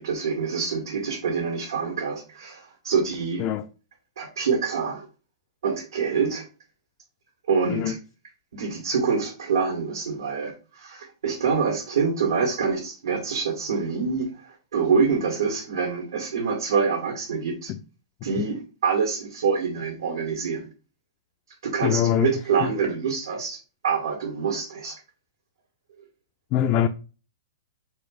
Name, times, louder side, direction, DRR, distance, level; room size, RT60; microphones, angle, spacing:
voice 1, 0.0-3.4 4.2-5.1 5.6-6.4 7.5-8.0 8.5-17.7 18.2-20.7 21.6-25.0, right 5 dB, 85° right, 1.6 m, -26 dB
voice 2, 21.8-22.3 26.5-26.9, left 10 dB, 35° left, 0.3 m, -22 dB
4.1 x 2.6 x 4.8 m
hypercardioid pair, 150°, 2 cm